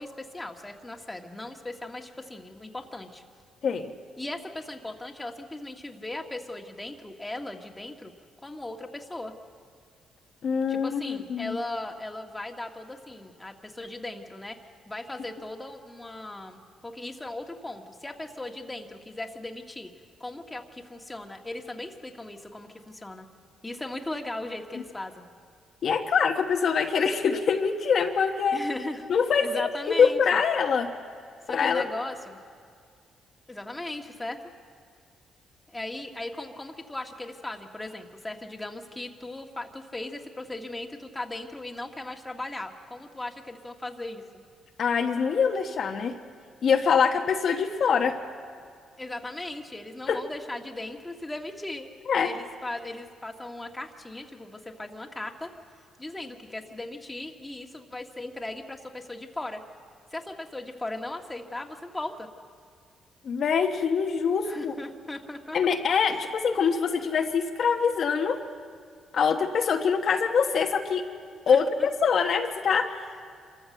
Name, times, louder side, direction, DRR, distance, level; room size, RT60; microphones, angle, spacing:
voice 1, 0.0-3.2 4.2-8.1 8.4-9.3 10.7-14.6 14.9-19.9 20.2-23.3 23.6-25.3 28.5-29.1 29.4-30.4 31.5-32.4 33.5-34.4 35.7-44.2 49.0-51.9 52.2-55.5 56.0-59.6 60.1-62.3 64.4-65.7 66.1-66.3 71.5-71.9 72.7-72.8, left 2 dB, 15° left, 2 dB, 1.7 m, -38 dB
voice 2, 10.4-11.6 25.8-28.6 29.1-30.9 31.5-31.8 44.8-46.2 46.6-48.2 50.1-50.2 52.1-52.3 63.2-64.7 65.5-68.4 69.1-71.0 71.5-72.9, left 6 dB, 60° left, 3 dB, 1.2 m, -24 dB
26.5 x 14.0 x 7.8 m, 2.2 s
cardioid pair, 90°, 0 cm